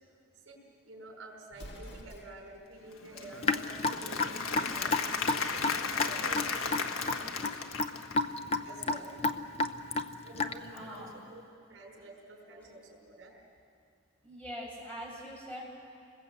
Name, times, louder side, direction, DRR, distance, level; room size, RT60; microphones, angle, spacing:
voice 1, 0.8-7.6 8.6-9.2 10.2-13.3, right 2 dB, 70° right, -1 dB, 5.1 m, -50 dB
Explosion, 1.5-2.6, equal, 55° left, 2.3 m, -48 dB
Applause / Crowd, 2.9-8.3, left 5 dB, 85° left, 1.4 m, -35 dB
Raindrop / Drip, 3.4-10.8, left 3 dB, 30° left, 0.7 m, -31 dB
voice 2, 10.7-11.3 11.7-12.1 12.6-12.8 13.3-13.4 14.2-15.6, equal, 5° left, -4 dB, 7.4 m, -44 dB
29.5 x 21.0 x 8.2 m, 2.4 s
head